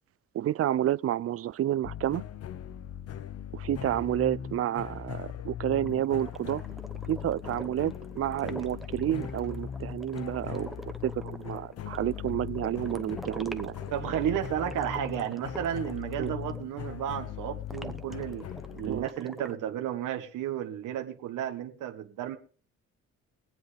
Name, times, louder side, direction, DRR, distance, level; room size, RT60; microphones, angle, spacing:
voice 1, 0.3-2.2 3.5-6.6 7.1-10.7 11.0-13.7 16.2-16.3 18.8-19.0, right 12 dB, 50° right, 0.4 m, -30 dB
sound 1, 1.8-19.1, left 9 dB, 55° left, 0.8 m, -39 dB
sound 2, 5.9-16.6 17.7-19.5, right 1 dB, ahead, 0.9 m, -45 dB
voice 2, 13.9-18.4 18.7-22.4, right 10 dB, 85° right, 1.3 m, -33 dB
22.5 x 7.9 x 3.4 m
cardioid pair, 90°, 30 cm